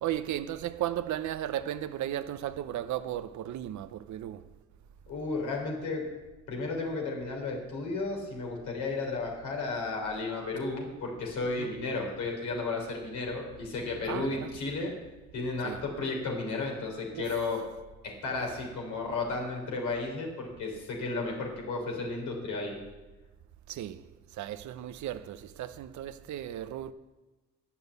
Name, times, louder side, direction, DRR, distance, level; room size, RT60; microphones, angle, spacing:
voice 1, 0.0-4.4 11.6-11.7 14.1-14.6 15.6-15.8 17.1-17.3 18.3-18.4 23.7-24.1 24.4-26.9, right 12 dB, 70° right, 0.7 m, -35 dB
voice 2, 5.1-6.0 6.5-14.9 15.3-17.6 18.0-22.7, left 3 dB, 80° left, 3.7 m, -33 dB
10.0 x 6.9 x 8.1 m
cardioid pair, 90°, 30 cm